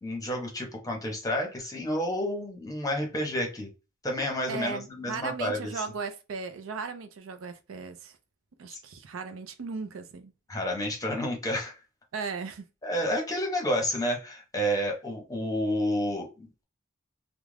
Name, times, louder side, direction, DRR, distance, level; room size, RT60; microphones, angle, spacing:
voice 1, 0.0-3.7 4.0-5.7 10.5-11.8 12.8-16.6, equal, 20° left, 0.8 m, -30 dB
voice 2, 4.5-8.2 8.6-10.3 12.1-12.6, right 5 dB, 75° right, 0.4 m, -37 dB
2.4 x 2.1 x 3.2 m
head